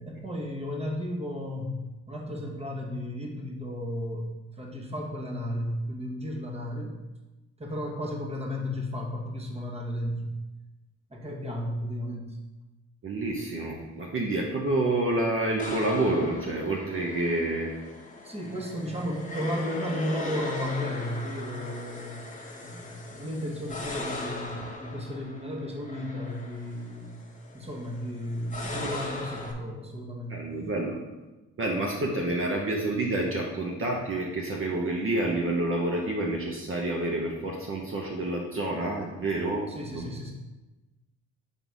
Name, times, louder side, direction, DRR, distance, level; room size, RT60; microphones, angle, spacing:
voice 1, 0.0-4.3 4.5-7.0 7.6-10.3 11.1-12.4 18.2-22.2 22.5-27.2 27.5-30.4 39.7-40.3, left 1 dB, 20° right, 0 dB, 1.3 m, -34 dB
voice 2, 13.0-17.7 30.3-31.0 31.6-39.7 39.9-40.1, right 2 dB, 45° right, -1 dB, 0.9 m, -28 dB
sound 1, 15.6-29.5, left 2 dB, 25° left, 1.0 m, -39 dB
5.5 x 4.0 x 4.7 m, 1.1 s
cardioid pair, 90°, 30 cm